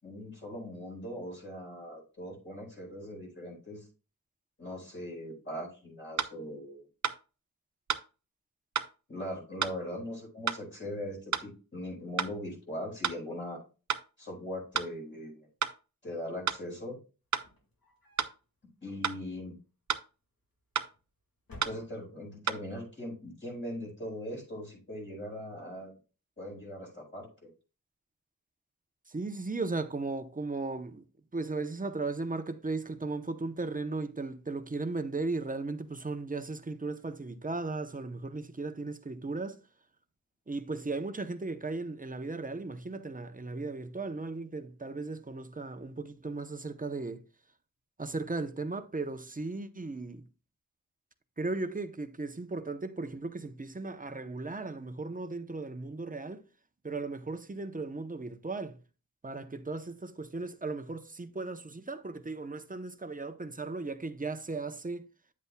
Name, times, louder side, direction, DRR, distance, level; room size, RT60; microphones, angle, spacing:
voice 1, 0.0-3.9 4.6-6.9 9.1-13.6 14.2-15.5 16.0-17.0 18.8-19.6 21.6-26.0 26.4-27.5, left 1 dB, 35° left, 4.5 m, -40 dB
sound 1, 6.2-6.3 7.0-7.2 7.9-8.1 8.8-8.9 9.6-9.8 10.5-10.6 11.3-11.5 12.2-12.3 13.0-13.2 13.9-14.1 14.7-14.9 15.6-15.8 16.5-16.6 17.3-17.5 18.2-18.4 19.0-19.2 19.9-20.1 20.8-20.9 21.6-21.8 22.5-22.6, right 7 dB, 55° right, 0.6 m, -31 dB
sound 2, 17.3-18.4 18.9-19.6 20.6-21.1 21.4-22.3, left 2 dB, 85° left, 2.1 m, -54 dB
voice 2, 29.1-31.1 31.3-39.6 40.5-47.2 48.0-50.3 51.4-56.5 56.8-58.8 59.2-65.1, right 3 dB, 25° right, 0.8 m, -36 dB
9.4 x 8.1 x 2.2 m
wide cardioid pair, 85°, 34 cm